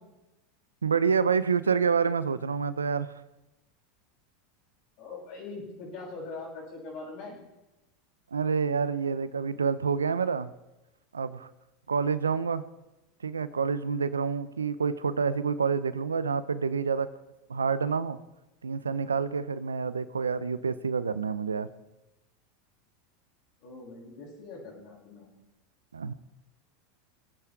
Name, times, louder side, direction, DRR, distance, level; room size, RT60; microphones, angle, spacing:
voice 1, 0.8-3.1 8.3-10.5 11.1-11.5 11.9-12.6 13.2-17.1 17.5-18.2 18.6-21.7 25.9-26.1, right 5 dB, 90° right, 16 dB, 0.7 m, -28 dB
voice 2, 5.0-7.3 23.6-25.3, left 3 dB, 55° left, -6 dB, 6.9 m, -42 dB
25.0 x 9.0 x 4.7 m, 1.0 s
hypercardioid pair, 90°, 0 cm